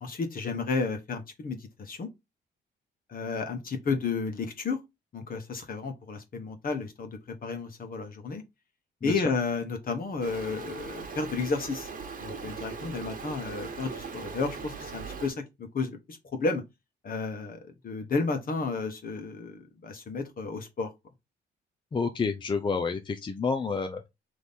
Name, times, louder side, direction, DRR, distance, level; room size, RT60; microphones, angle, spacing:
voice 1, 0.0-2.1 3.1-4.8 5.1-8.4 9.0-11.9 12.2-16.6 17.0-20.9, left 4 dB, 45° left, 1.2 m, -32 dB
Stream, 10.2-15.3, right 5 dB, 45° right, 1.3 m, -39 dB
voice 2, 21.9-24.1, left 5 dB, 25° left, 0.5 m, -29 dB
3.5 x 3.1 x 4.1 m
cardioid pair, 90°, 20 cm